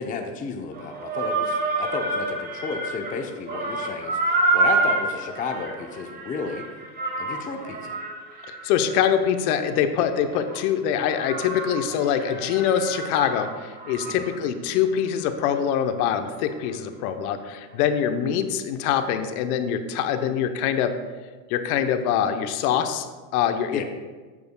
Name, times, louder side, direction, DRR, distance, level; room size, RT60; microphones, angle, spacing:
voice 1, 0.0-4.2 4.5-6.6 7.2-7.9 14.2-14.3 23.7-23.8, left 4 dB, 15° left, 4 dB, 0.6 m, -32 dB
sound 1, 0.7-3.2 3.5-10.6 11.1-14.4 14.7-14.8 15.3-15.4, right 3 dB, 20° right, 1.3 m, -28 dB
voice 2, 8.5-20.9 21.5-23.8, left 8 dB, 60° left, 8 dB, 0.9 m, -24 dB
11.5 x 8.4 x 2.2 m, 1.4 s
supercardioid pair, 115°, 49 cm